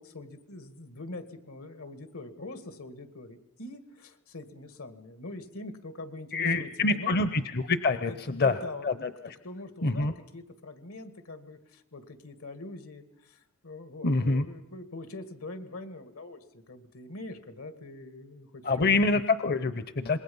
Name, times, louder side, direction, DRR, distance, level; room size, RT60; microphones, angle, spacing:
voice 1, 0.0-7.2 8.0-8.9 9.4-19.1, left 2 dB, 85° left, 9 dB, 2.1 m, -43 dB
voice 2, 6.3-8.6 8.8-9.1 9.8-10.1 14.0-14.5 18.6-20.2, left 3 dB, 50° left, 12 dB, 0.7 m, -26 dB
26.5 x 21.5 x 5.5 m, 0.80 s
head